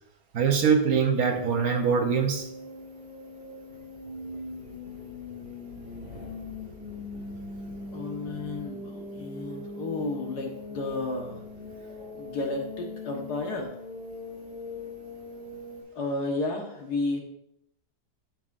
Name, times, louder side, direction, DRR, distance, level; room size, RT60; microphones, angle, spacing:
voice 1, 0.3-2.5, right 6 dB, 65° right, 4 dB, 1.4 m, -23 dB
sound 1, 1.1-15.8, left 2 dB, 35° right, 2.2 m, -40 dB
voice 2, 7.9-11.4 12.0-13.8 16.0-17.2, left 2 dB, 90° left, 1 dB, 2.0 m, -32 dB
12.0 x 5.6 x 2.6 m, 0.75 s
omnidirectional pair, 1.7 m